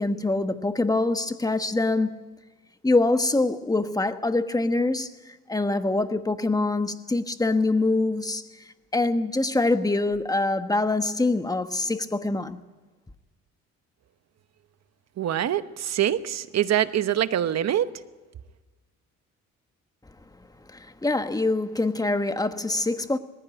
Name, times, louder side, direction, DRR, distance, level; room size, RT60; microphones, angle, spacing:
voice 1, 0.0-2.2 2.8-8.4 8.9-12.6 20.7-23.2, left 2 dB, 10° left, 1.2 m, -24 dB
voice 2, 15.2-17.9, right 11 dB, 60° right, 1.0 m, -24 dB
19.5 x 15.5 x 9.1 m
cardioid pair, 90°, 30 cm